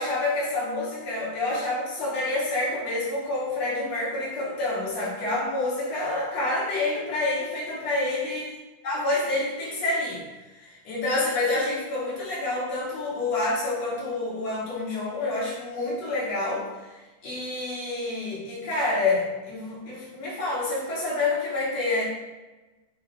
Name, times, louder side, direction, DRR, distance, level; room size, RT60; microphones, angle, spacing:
voice 1, 0.0-8.4 8.8-10.2 10.5-16.6 17.2-22.0, left 2 dB, 50° left, -7 dB, 2.5 m, -28 dB
8.0 x 4.1 x 3.4 m, 1.2 s
omnidirectional pair, 4.6 m